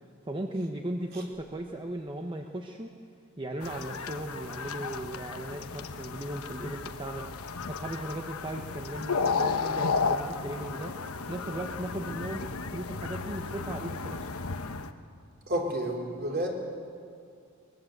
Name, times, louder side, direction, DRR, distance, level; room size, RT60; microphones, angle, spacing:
voice 1, 0.2-2.9 3.4-11.0 11.3-12.5 12.7-14.3, right 1 dB, 25° right, 3 dB, 1.0 m, -37 dB
sound 1, 3.6-14.9, left 4 dB, 85° left, 1.1 m, -33 dB
voice 2, 15.5-16.5, right 1 dB, 50° right, 0 dB, 4.0 m, -30 dB
23.5 x 20.5 x 8.0 m, 2.3 s
head